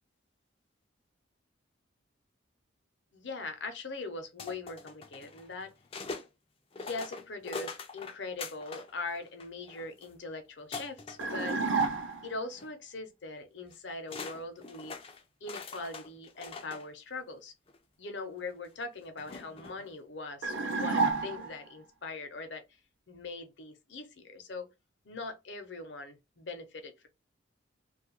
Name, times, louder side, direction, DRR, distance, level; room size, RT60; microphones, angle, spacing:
voice 1, 3.1-5.7 6.8-11.6 12.2-15.0 15.4-17.5 18.0-22.6 23.1-24.7 25.0-27.1, left 3 dB, 65° left, 0.7 m, -41 dB
sound 1, 4.4-6.3 6.7-8.9 9.2-10.1 10.7-12.1 12.5-12.7 13.7-13.8 14.1-16.9 17.7-17.8 19.2-19.9, left 4 dB, 30° left, 0.3 m, -43 dB
sound 2, 11.2-12.4 20.4-21.7, right 4 dB, 80° right, 0.5 m, -30 dB
2.6 x 2.3 x 2.9 m
head